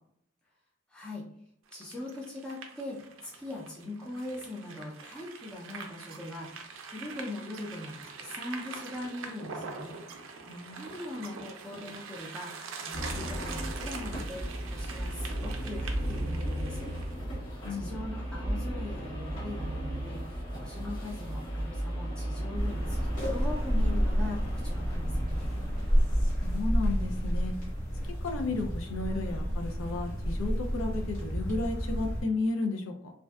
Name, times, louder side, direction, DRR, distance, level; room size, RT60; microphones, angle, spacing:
voice 1, 0.9-1.2 1.7-9.9 10.7-16.9 17.7-25.5, left 1 dB, 5° left, -6 dB, 0.4 m, -41 dB
sound 1, 1.7-17.1, right 5 dB, 75° right, 0.4 m, -44 dB
voice 2, 10.5-10.9 17.6-17.9 26.4-27.5 28.2-33.1, left 2 dB, 90° left, 5 dB, 0.4 m, -33 dB
sound 2, 12.9-28.1, equal, 70° left, 1.0 m, -36 dB
sound 3, 22.5-32.2, equal, 40° left, 1.0 m, -30 dB
2.5 x 2.1 x 2.3 m, 0.71 s
head